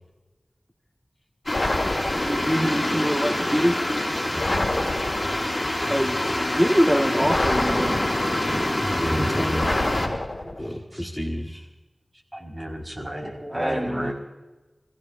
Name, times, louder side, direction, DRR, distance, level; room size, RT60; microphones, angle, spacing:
sound 1, 1.5-2.6 4.4-5.5 7.2-8.4 9.6-10.7, left 2 dB, 70° left, 2.1 m, -28 dB
sound 2, 1.5-10.1, left 1 dB, 30° left, 5.2 m, -26 dB
voice 1, 2.1-3.8 5.9-8.0 13.5-14.1, equal, 5° right, -1 dB, 1.7 m, -24 dB
voice 2, 4.3-5.2 8.8-10.0 10.5-11.7, equal, 10° left, 0 dB, 1.4 m, -31 dB
voice 3, 12.3-14.1, right 1 dB, 30° right, 0 dB, 5.0 m, -32 dB
27.0 x 16.0 x 2.6 m, 1.1 s
wide cardioid pair, 55°, 0 cm